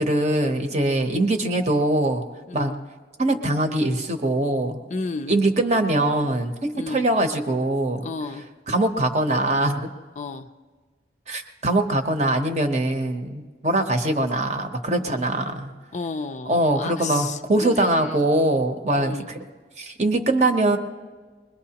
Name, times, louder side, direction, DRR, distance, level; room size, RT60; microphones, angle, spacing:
voice 1, 0.0-2.2 2.5-2.7 3.2-4.8 5.3-8.1 8.7-9.9 11.3-15.7 16.5-19.4 19.8-20.8, right 1 dB, 35° right, 6 dB, 0.8 m, -22 dB
voice 2, 2.5-2.8 4.9-5.3 6.8-7.0 8.0-8.5 10.2-10.5 15.1-15.2 15.9-18.2 18.9-19.3, left 4 dB, 40° left, 8 dB, 0.4 m, -32 dB
23.5 x 20.5 x 2.9 m, 1.5 s
head